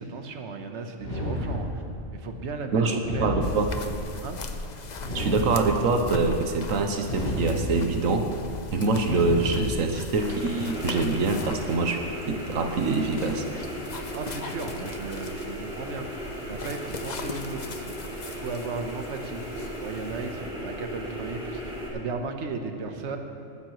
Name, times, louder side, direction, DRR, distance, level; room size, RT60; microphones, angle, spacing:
voice 1, 0.0-1.8 2.1-3.4 4.2-4.4 14.1-17.9 18.3-19.4 19.8-23.2, right 4 dB, 60° right, 5 dB, 1.3 m, -35 dB
sound 1, 1.0-2.1 3.0-4.1 5.0-6.0 7.0-8.0 9.0-10.0, equal, 60° left, 3.4 m, -31 dB
voice 2, 2.7-3.7 5.1-8.3 8.7-12.0 12.3-13.4, right 3 dB, 85° right, 5 dB, 1.2 m, -25 dB
sound 2, 3.4-20.5, left 3 dB, 40° left, 0.7 m, -40 dB
sound 3, 10.2-21.9, equal, 5° right, 2.9 m, -36 dB
19.5 x 14.0 x 3.1 m, 2.5 s
omnidirectional pair, 1.4 m